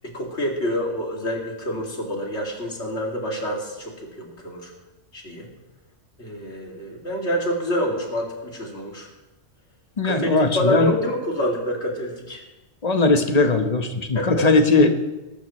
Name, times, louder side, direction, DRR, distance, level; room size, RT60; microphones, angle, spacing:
voice 1, 0.0-3.9 4.2-4.7 5.1-5.5 6.2-9.1 10.0-12.4 14.1-14.5, equal, 65° left, 0 dB, 2.8 m, -27 dB
voice 2, 10.0-11.0 12.8-14.9, left 3 dB, 35° left, 6 dB, 1.2 m, -19 dB
21.0 x 12.0 x 3.1 m, 1.1 s
omnidirectional pair, 1.2 m